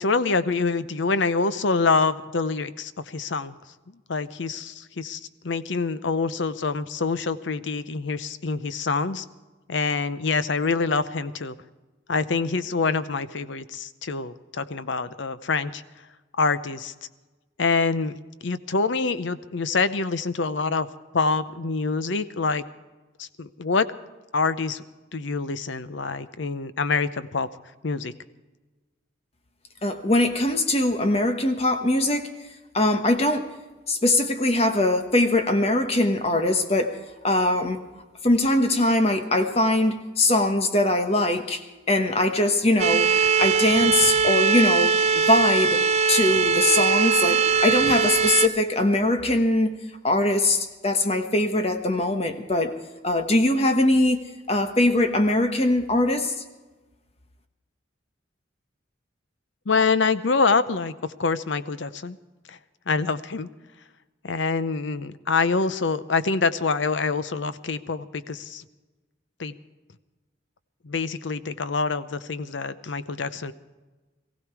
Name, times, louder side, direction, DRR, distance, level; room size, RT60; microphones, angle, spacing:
voice 1, 0.0-3.5 4.1-9.2 9.7-11.5 12.1-15.8 16.4-16.9 17.6-18.2 18.4-20.9 21.1-22.6 23.2-23.9 24.3-24.8 25.1-27.5 27.8-28.1 59.7-62.2 62.5-62.6 62.9-63.5 64.2-68.6 69.4-69.5 70.8-73.5, left 4 dB, 70° left, 14 dB, 0.7 m, -25 dB
voice 2, 29.8-32.3 32.7-33.5 33.9-37.0 37.2-37.8 38.2-41.6 41.9-43.1 43.4-45.8 46.1-49.8 50.0-52.7 53.0-56.3, left 1 dB, 30° left, 7 dB, 1.2 m, -22 dB
sound 1, 42.8-48.5, right 5 dB, 35° right, 0.4 m, -21 dB
19.5 x 16.0 x 4.7 m, 1.2 s
head